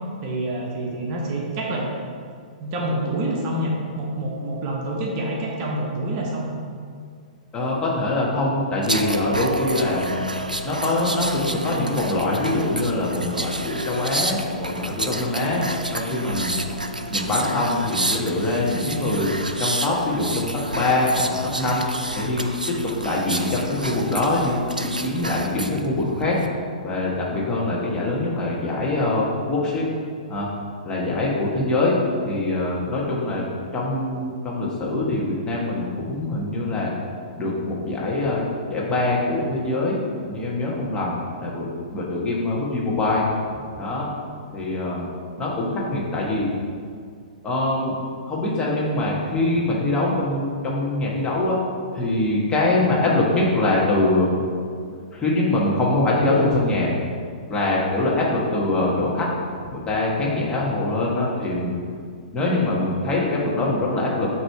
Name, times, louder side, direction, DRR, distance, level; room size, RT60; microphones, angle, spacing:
voice 1, 0.2-1.9 2.6-6.5, right 1 dB, 35° right, -2 dB, 1.0 m, -27 dB
voice 2, 7.5-10.3 10.6-15.6 15.9-16.5 17.1-19.3 19.6-21.9 22.1-26.4 26.8-29.8 30.3-30.5 30.8-32.0 32.2-33.4 33.7-36.9 37.3-43.2 43.8-44.1 44.5-45.1 45.4-46.5 47.4-48.0 48.3-51.6 51.9-54.3 55.1-56.9 57.5-59.3 59.6-61.7 62.3-64.3, left 2 dB, 20° left, -5 dB, 1.3 m, -23 dB
sound 1, 8.8-25.8 26.2-26.5, right 1 dB, 90° right, 0.4 m, -29 dB
7.9 x 3.1 x 4.6 m, 2.1 s
figure-of-eight pair, 110°, 4 cm